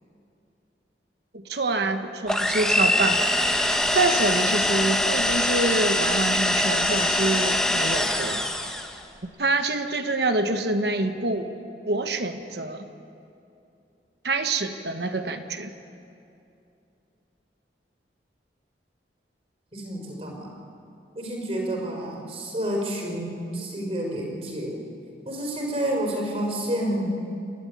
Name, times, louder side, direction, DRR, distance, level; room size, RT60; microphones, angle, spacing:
voice 1, 1.3-3.4 3.9-8.5 9.4-11.5 11.8-12.9 14.2-15.7, right 2 dB, 70° right, 7 dB, 1.2 m, -26 dB
sound 1, 2.3-9.0, left 1 dB, 5° left, 1.1 m, -23 dB
voice 2, 19.7-20.5 21.1-24.8 25.2-27.1, right 1 dB, 35° right, 0 dB, 4.6 m, -29 dB
27.5 x 12.5 x 9.7 m, 2.6 s
head